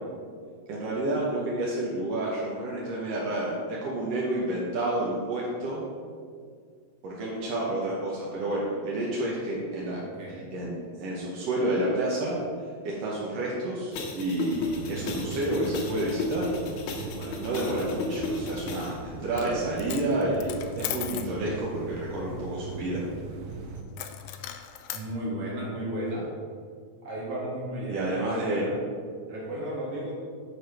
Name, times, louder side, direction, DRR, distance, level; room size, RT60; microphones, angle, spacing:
voice 1, 0.7-5.8 7.0-10.0 10.5-12.4 12.8-16.5 17.4-23.0 27.9-28.6, right 1 dB, 65° right, -5 dB, 1.7 m, -30 dB
voice 2, 10.0-10.5 16.9-17.5 24.9-26.3 27.0-28.8 29.3-30.1, right 1 dB, 50° right, -4 dB, 2.3 m, -34 dB
sound 1, 13.9-18.9, left 2 dB, 70° left, 2.3 m, -34 dB
sound 2, 14.5-23.8, right 4 dB, 85° right, 2.4 m, -40 dB
Coin (dropping), 19.2-19.5 19.8-21.3 24.0-25.1, left 11 dB, 85° left, 1.7 m, -37 dB
6.7 x 4.3 x 6.4 m, 2.1 s
omnidirectional pair, 3.9 m